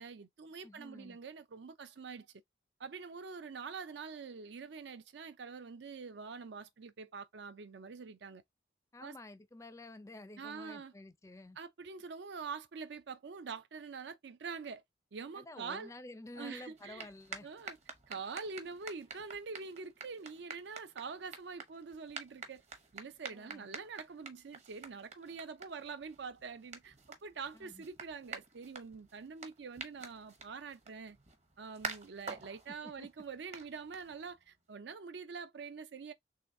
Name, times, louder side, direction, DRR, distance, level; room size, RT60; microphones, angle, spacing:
voice 1, 0.0-2.3 2.8-8.4 9.0-9.1 10.4-10.9 11.6-14.8 15.1-15.9 16.4-17.1 17.4-17.8 18.1-22.6 22.9-31.2 31.6-36.1, right 5 dB, 70° right, 0.5 m, -45 dB
voice 2, 0.6-1.2 8.9-11.6 15.3-17.5 23.3-23.8 27.5-27.9 32.7-33.3, left 2 dB, 15° left, 0.4 m, -51 dB
sound 1, 16.7-34.5, right 4 dB, 35° right, 0.8 m, -49 dB
3.8 x 3.2 x 2.6 m
head